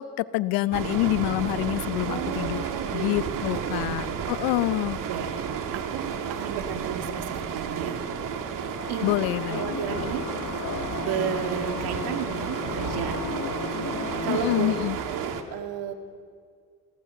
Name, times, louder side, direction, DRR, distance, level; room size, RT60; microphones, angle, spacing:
voice 1, 0.0-2.6 2.9-5.0 9.0-9.6 14.3-15.0, left 17 dB, 80° left, 17 dB, 0.7 m, -27 dB
sound 1, 0.7-15.4, right 7 dB, 60° right, 2.4 m, -32 dB
voice 2, 2.1-3.9 5.1-5.3 5.7-8.1 8.9-9.1 9.5-10.3 11.0-13.2 14.2-15.9, right 8 dB, 80° right, 6 dB, 2.3 m, -33 dB
sound 2, 8.8-14.9, left 8 dB, 55° left, 1.2 m, -35 dB
29.0 x 16.5 x 7.6 m, 2.2 s
supercardioid pair, 80°, 36 cm